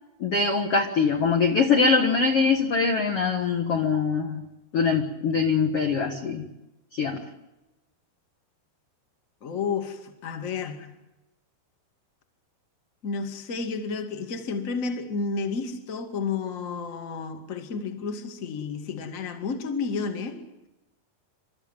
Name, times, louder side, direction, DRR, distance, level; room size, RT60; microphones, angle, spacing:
voice 1, 0.2-4.4 4.7-6.4 7.0-7.2, left 5 dB, 50° left, 3 dB, 1.8 m, -23 dB
voice 2, 9.4-10.9 13.0-20.4, left 5 dB, 30° left, 7 dB, 1.6 m, -31 dB
29.0 x 13.5 x 9.0 m, 1.0 s
omnidirectional pair, 4.8 m